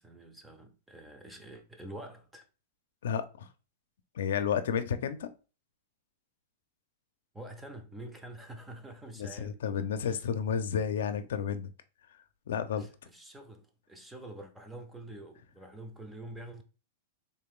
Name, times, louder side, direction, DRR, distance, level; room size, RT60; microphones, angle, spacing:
voice 1, 0.0-2.5 7.3-9.6 10.0-10.2 12.7-16.6, right 1 dB, 5° right, 0.5 m, -47 dB
voice 2, 3.0-3.5 4.2-5.3 9.2-11.7 12.5-12.9, left 7 dB, 80° left, 0.5 m, -31 dB
3.6 x 2.3 x 3.6 m
supercardioid pair, 155°, 0 cm